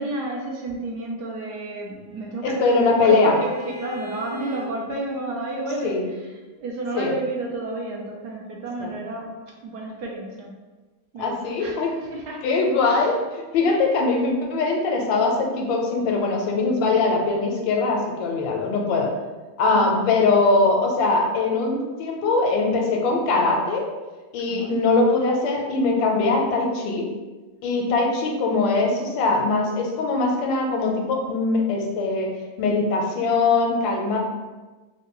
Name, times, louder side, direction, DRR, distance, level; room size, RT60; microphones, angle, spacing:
voice 1, 0.0-6.2 6.6-9.3 9.6-10.5 11.1-12.4 12.8-13.1 13.6-13.8 19.7-20.1 24.5-24.8, right 2 dB, 70° right, -1 dB, 1.1 m, -31 dB
Bowed string instrument, 1.5-4.7, left 1 dB, 15° right, 0.5 m, -40 dB
voice 2, 2.4-3.4 5.8-6.1 6.9-7.1 8.8-9.0 11.2-11.9 12.4-13.1 13.5-19.1 19.6-23.9 24.3-27.1 27.6-34.2, left 3 dB, 85° left, 1 dB, 1.3 m, -21 dB
3.6 x 2.1 x 3.7 m, 1.2 s
omnidirectional pair, 2.0 m